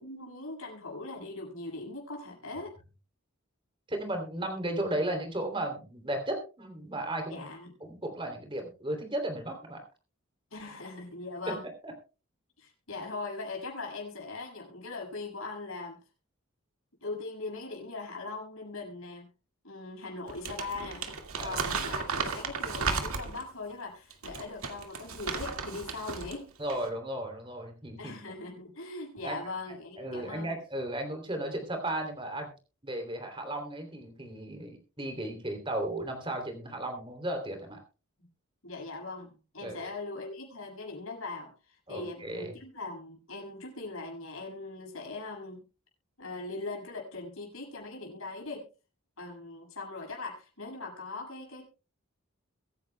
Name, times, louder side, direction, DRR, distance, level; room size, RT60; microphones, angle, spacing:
voice 1, 0.0-2.7 7.3-7.8 10.5-11.6 12.6-16.0 17.0-19.3 19.6-21.1 21.4-26.5 28.0-30.6 38.6-45.6 46.2-48.6 49.2-51.7, left 3 dB, 70° left, -1 dB, 7.0 m, -40 dB
voice 2, 3.9-7.4 7.8-9.8 11.5-11.6 11.8-11.9 21.4-21.6 26.6-28.1 29.2-29.4 30.0-32.5 32.8-37.8 39.6-39.9 41.9-42.5, right 1 dB, 25° right, 4 dB, 3.1 m, -35 dB
Crumpling crinkling, 20.3-23.5 24.1-26.4 26.7-26.9, right 4 dB, 75° right, 2.0 m, -34 dB
23.0 x 10.5 x 2.3 m, 0.33 s
head